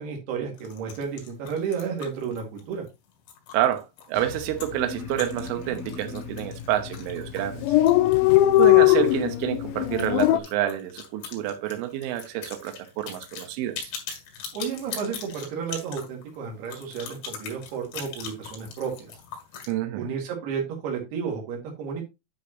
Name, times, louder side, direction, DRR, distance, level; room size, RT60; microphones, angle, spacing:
voice 1, 0.0-2.8 14.5-19.2 19.9-22.1, right 6 dB, 60° right, 3.7 m, -32 dB
sound 1, 0.5-8.7 9.0-9.1 9.4-9.5 9.9-19.7, left 7 dB, 70° left, 4.6 m, -41 dB
voice 2, 3.5-7.7 8.6-13.8 19.7-20.1, right 13 dB, 80° right, 3.4 m, -28 dB
Dog, 4.2-4.4 4.7-4.8 5.1-5.8 6.4-6.6 6.9-7.0 7.2-7.3 7.5-10.4, left 16 dB, 85° left, 2.6 m, -19 dB
sound 2, 4.6-9.7, left 2 dB, 55° left, 1.3 m, -43 dB
9.9 x 6.0 x 2.9 m
omnidirectional pair, 5.8 m